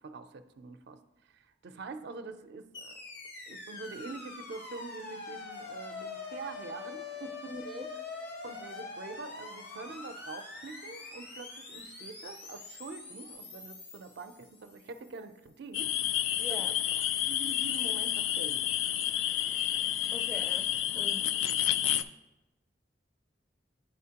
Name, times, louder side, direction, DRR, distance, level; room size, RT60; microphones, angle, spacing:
voice 1, 0.0-2.9 3.5-7.5 8.4-15.9 16.5-16.7 17.3-18.7, right 4 dB, 60° right, 8 dB, 0.4 m, -45 dB
sound 1, 2.7-15.0, left 3 dB, 60° left, 1.0 m, -44 dB
voice 2, 7.5-7.9 16.4-16.7 20.1-20.7 20.9-21.4, left 1 dB, ahead, 5 dB, 0.4 m, -43 dB
sound 2, 15.7-22.0, left 11 dB, 90° left, 0.3 m, -30 dB
10.0 x 4.3 x 2.8 m, 0.98 s
head